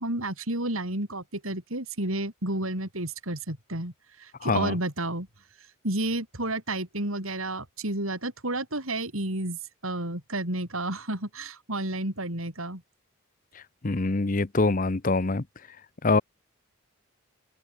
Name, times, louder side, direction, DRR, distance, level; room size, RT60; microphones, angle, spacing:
voice 1, 0.0-5.3 5.8-12.8, right 1 dB, 80° right, 6.7 m, -31 dB
voice 2, 4.4-4.7 13.8-15.4 16.0-16.2, left 3 dB, 40° left, 0.8 m, -24 dB
open air
head